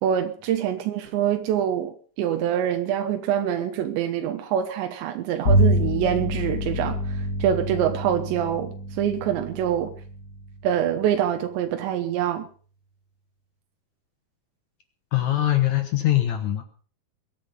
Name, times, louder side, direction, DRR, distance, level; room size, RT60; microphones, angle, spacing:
voice 1, 0.0-9.9 10.6-12.5, right 10 dB, 85° right, 3.4 m, -25 dB
Bowed string instrument, 5.4-11.1, equal, 35° left, 1.7 m, -26 dB
voice 2, 15.1-16.6, left 13 dB, 65° left, 1.8 m, -22 dB
22.0 x 9.8 x 5.3 m
omnidirectional pair, 5.0 m